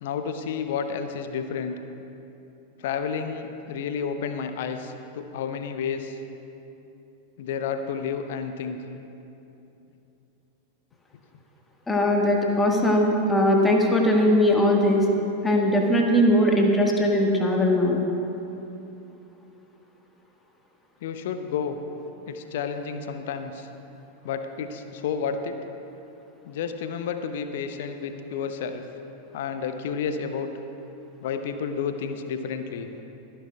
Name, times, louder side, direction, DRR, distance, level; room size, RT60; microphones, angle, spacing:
voice 1, 0.0-1.8 2.8-6.2 7.4-8.8 21.0-21.8 22.3-23.7 24.2-25.6 26.4-28.8 29.3-30.5 31.2-32.9, left 6 dB, 55° left, 8 dB, 0.7 m, -31 dB
voice 2, 11.9-15.1 15.4-18.0, left 1 dB, 10° left, 0 dB, 1.5 m, -20 dB
23.0 x 10.0 x 2.3 m, 2.9 s
figure-of-eight pair, 90°, 0 cm